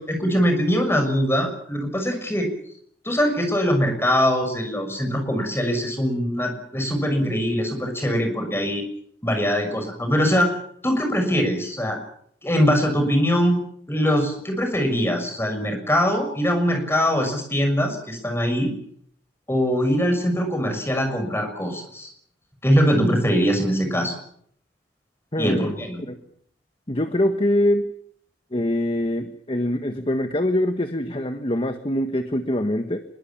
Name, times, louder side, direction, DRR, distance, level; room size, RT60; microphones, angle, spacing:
voice 1, 0.0-2.5 3.0-8.8 9.2-10.5 10.8-12.0 12.4-13.6 13.9-18.7 19.5-22.1 22.6-24.1 25.4-26.0, equal, 15° left, 5 dB, 6.3 m, -22 dB
voice 2, 25.3-25.7 26.1-26.2 26.9-27.9 28.5-33.0, left 1 dB, 30° left, 7 dB, 1.5 m, -23 dB
24.5 x 22.5 x 7.3 m, 0.66 s
head